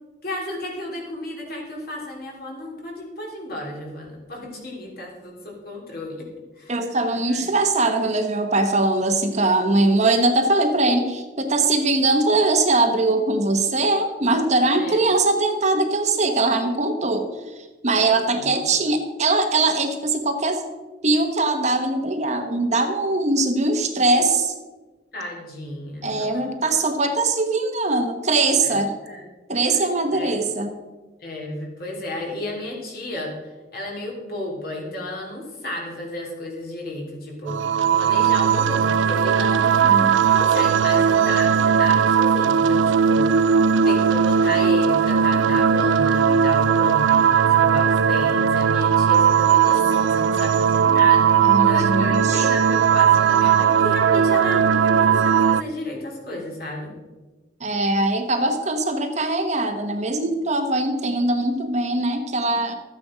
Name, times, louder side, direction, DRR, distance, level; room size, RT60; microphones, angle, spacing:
voice 1, 0.2-6.3 6.5-6.9 7.3-7.4 14.7-15.0 18.0-18.5 25.1-26.7 28.6-29.2 29.6-29.9 30.1-30.4 31.2-40.0 40.3-43.6 43.8-56.9, left 1 dB, 55° left, -1 dB, 3.2 m, -33 dB
voice 2, 6.7-20.6 21.0-24.5 26.0-28.9 29.5-30.7 39.7-40.2 51.4-52.5 57.6-62.7, right 2 dB, 40° right, 5 dB, 1.2 m, -21 dB
sound 1, 37.5-55.6, right 7 dB, 90° right, 0.4 m, -18 dB
13.0 x 9.0 x 5.0 m, 1.2 s
head